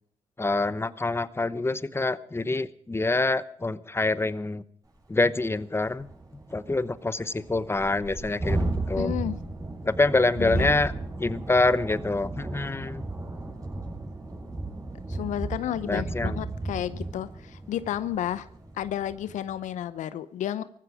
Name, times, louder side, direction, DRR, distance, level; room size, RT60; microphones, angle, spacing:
voice 1, 0.4-4.6 5.1-6.1 6.5-9.1 9.8-10.9 11.2-13.1 15.8-16.4, left 2 dB, 20° left, 16 dB, 1.0 m, -26 dB
Thunderstorm, 4.9-5.0 5.4-5.5 5.8-19.4, right 2 dB, 30° right, 6.9 m, -34 dB
voice 2, 9.0-9.4 10.4-10.7 15.1-18.5 18.8-20.6, left 11 dB, 80° left, 15 dB, 0.8 m, -31 dB
18.5 x 15.0 x 5.0 m, 0.64 s
supercardioid pair, 50°, 13 cm